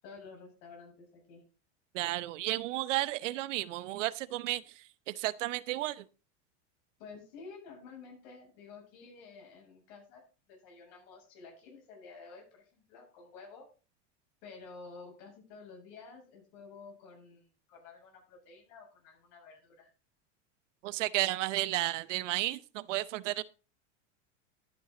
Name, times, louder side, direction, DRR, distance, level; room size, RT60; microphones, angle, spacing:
voice 1, 0.0-1.4 7.0-13.7 14.4-19.9, left 4 dB, 65° left, 0 dB, 7.3 m, -51 dB
voice 2, 1.9-6.1 20.8-23.4, right 17 dB, 85° right, 17 dB, 0.9 m, -33 dB
12.5 x 9.2 x 3.9 m, 0.34 s
supercardioid pair, 125°, 36 cm